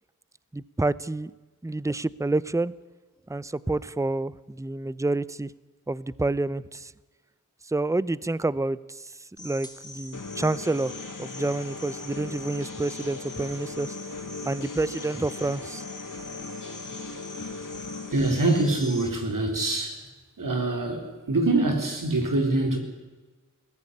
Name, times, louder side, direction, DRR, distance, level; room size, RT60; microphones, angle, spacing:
voice 1, 0.5-1.3 1.6-2.7 3.3-5.5 5.9-6.9 7.7-9.1 9.4-13.9 14.5-15.8, right 2 dB, 10° right, 19 dB, 0.6 m, -28 dB
sound 1, 9.4-19.1, left 1 dB, 10° left, 3.7 m, -44 dB
sound 2, 10.1-18.1, left 4 dB, 70° left, 1.9 m, -39 dB
voice 2, 18.1-20.0 20.4-22.8, right 2 dB, 75° right, 4 dB, 4.0 m, -24 dB
21.5 x 15.5 x 9.9 m, 1.3 s
wide cardioid pair, 50°, 32 cm